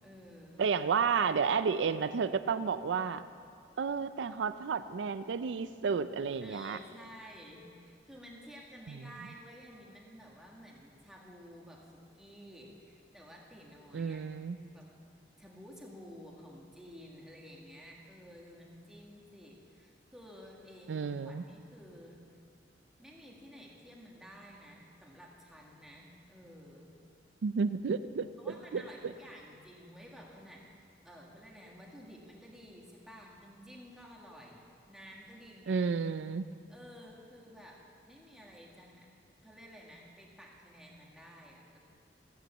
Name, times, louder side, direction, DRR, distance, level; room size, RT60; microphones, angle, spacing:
voice 1, 0.0-0.6 6.4-14.2 14.6-14.9 15.4-22.2 23.0-26.9 28.4-30.7 31.0-35.9 36.7-37.8 38.1-39.1 39.4-41.8, equal, 5° right, -3 dB, 1.7 m, -52 dB
voice 2, 0.6-3.3 3.8-6.8 13.9-14.6 20.9-21.4 27.4-28.3 28.7-29.1 35.7-36.5, right 5 dB, 85° right, 12 dB, 0.4 m, -31 dB
14.5 x 9.2 x 7.1 m, 2.4 s
head